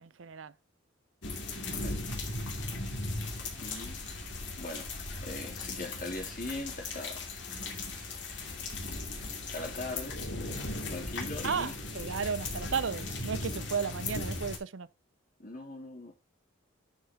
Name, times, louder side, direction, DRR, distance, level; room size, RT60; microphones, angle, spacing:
voice 1, 0.0-0.5 11.4-14.9, right 6 dB, 75° right, 0.6 m, -34 dB
sound 1, 1.2-14.6, left 2 dB, 60° left, 2.7 m, -37 dB
voice 2, 3.6-4.0 4.6-4.9 5.2-7.3 9.5-10.2 10.9-11.7 15.4-16.1, left 2 dB, 40° left, 3.2 m, -40 dB
11.5 x 5.6 x 3.6 m
head